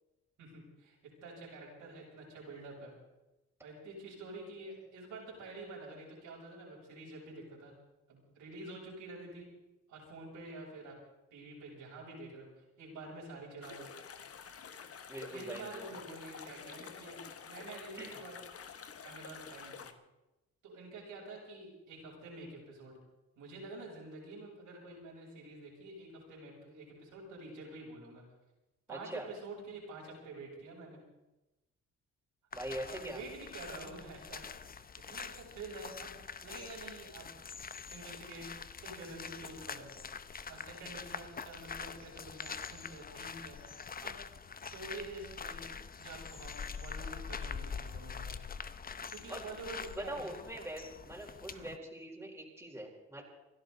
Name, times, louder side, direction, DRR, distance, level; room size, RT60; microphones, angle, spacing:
voice 1, 0.4-2.9 3.6-7.7 8.1-9.4 9.9-11.0 11.3-12.5 12.8-13.9 15.3-18.4 19.0-19.9 20.6-22.9 23.4-28.2 28.9-31.0 32.8-37.3 37.9-38.5 38.8-43.6 44.0-44.2 44.7-45.6 46.0-48.4 49.1-50.4 51.5-51.7, right 2 dB, 80° right, -4 dB, 7.5 m, -48 dB
sound 1, 13.6-19.9, left 7 dB, 50° left, 1.4 m, -49 dB
voice 2, 15.1-15.9 18.0-18.2 28.9-29.3 32.5-33.2 49.3-49.5 49.9-53.2, right 1 dB, 10° right, -2 dB, 4.4 m, -43 dB
sound 2, 32.5-51.8, left 6 dB, 30° left, 0.8 m, -45 dB
29.0 x 12.0 x 4.1 m, 1.0 s
cardioid pair, 90°, 30 cm